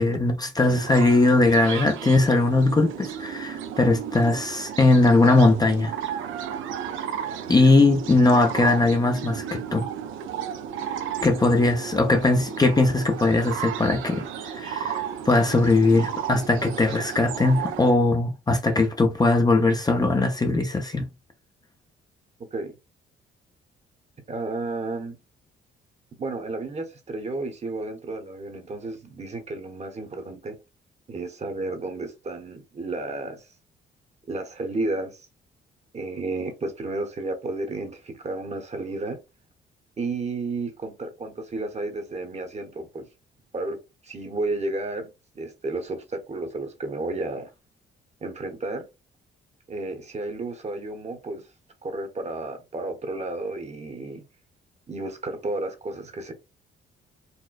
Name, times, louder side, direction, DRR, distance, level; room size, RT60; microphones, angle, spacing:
voice 1, 0.0-6.0 7.5-9.9 11.2-21.1, left 2 dB, 20° left, 0.5 m, -20 dB
sound 1, 0.6-17.9, right 8 dB, 80° right, 0.5 m, -34 dB
voice 2, 24.3-25.2 26.2-30.6 31.1-33.5 34.3-35.3 35.9-39.2 40.0-43.1 43.5-43.8 44.0-45.1 45.3-47.5 48.2-48.9 49.7-51.4 51.8-54.2 54.9-56.3, right 2 dB, 35° right, 0.9 m, -32 dB
4.3 x 2.1 x 2.3 m
cardioid pair, 90°, 20 cm